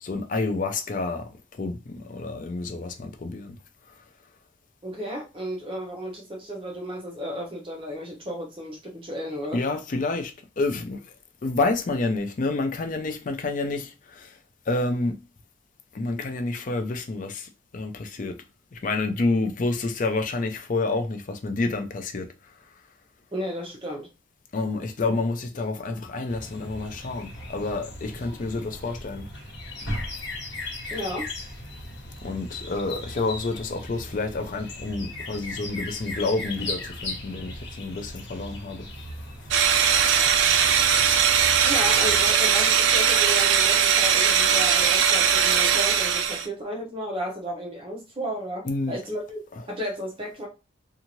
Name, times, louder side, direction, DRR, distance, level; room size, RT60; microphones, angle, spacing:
voice 1, 0.0-3.6 3.9-4.0 9.5-11.1 11.4-14.4 14.7-15.2 15.9-18.4 18.7-22.5 24.5-29.3 32.2-38.9 39.2-39.3 48.6-49.0 49.5-49.6, left 3 dB, 40° left, 0.4 m, -29 dB
voice 2, 4.8-9.6 23.3-24.1 30.9-31.3 41.6-49.4 49.7-50.5, equal, 25° right, 0.8 m, -33 dB
sound 1, 26.3-42.3, left 1 dB, 65° left, 1.1 m, -37 dB
sound 2, 39.5-46.5, right 8 dB, 70° right, 0.3 m, -20 dB
2.7 x 2.4 x 2.9 m
head